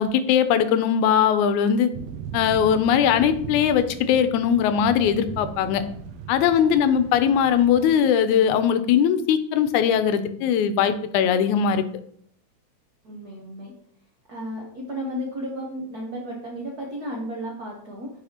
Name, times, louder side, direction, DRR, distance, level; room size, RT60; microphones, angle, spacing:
voice 1, 0.0-1.9 2.3-5.8 6.3-11.8, left 8 dB, 85° left, 11 dB, 2.0 m, -20 dB
sound 1, 1.9-8.0, right 7 dB, 85° right, 1.4 m, -38 dB
voice 2, 13.0-13.7 14.3-18.1, equal, 70° right, -2 dB, 0.9 m, -33 dB
8.9 x 4.9 x 2.9 m, 0.64 s
omnidirectional pair, 3.4 m